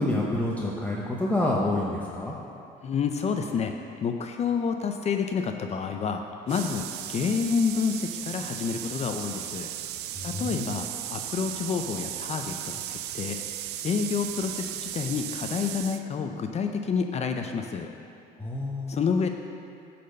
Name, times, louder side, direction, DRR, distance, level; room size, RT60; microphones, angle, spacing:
voice 1, 0.0-2.3 10.2-10.7 18.4-18.9, left 1 dB, 10° left, -4 dB, 0.9 m, -28 dB
voice 2, 2.8-3.7 4.0-9.7 10.2-13.4 13.8-17.9 18.9-19.3, left 6 dB, 40° left, 5 dB, 0.6 m, -29 dB
sound 1, 6.5-16.0, right 12 dB, 80° right, 0.4 m, -36 dB
10.5 x 4.3 x 6.5 m, 2.6 s
cardioid pair, 110°, 17 cm